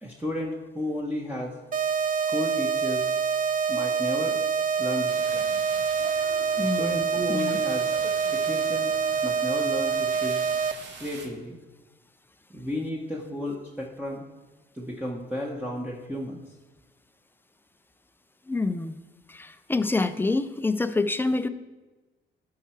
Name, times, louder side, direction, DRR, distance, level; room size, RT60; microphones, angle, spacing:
voice 1, 0.0-1.5 2.3-3.1 3.7-4.4 4.8-5.6 6.6-7.9 8.3-8.9 9.2-10.4 11.0-11.6 12.5-14.2 14.7-16.4, left 1 dB, 5° right, -3 dB, 1.1 m, -33 dB
sound 1, 1.7-10.7, right 6 dB, 40° right, 0.5 m, -26 dB
sound 2, 5.1-11.3, right 3 dB, 65° right, 1.4 m, -44 dB
voice 2, 6.6-7.0 7.3-7.6 18.5-19.0 19.3-21.5, left 3 dB, 10° left, 11 dB, 0.5 m, -27 dB
11.5 x 4.7 x 4.6 m, 1.2 s
cardioid pair, 90°, 20 cm